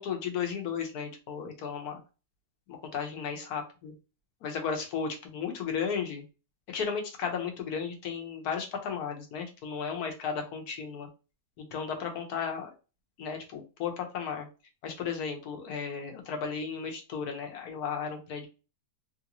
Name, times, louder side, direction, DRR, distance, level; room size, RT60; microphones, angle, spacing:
voice 1, 0.0-2.0 2.7-3.9 4.4-6.2 6.7-11.1 11.6-12.7 13.2-14.5 14.8-18.5, left 6 dB, 70° left, 3 dB, 1.3 m, -34 dB
3.1 x 2.7 x 2.9 m, 0.31 s
omnidirectional pair, 1.7 m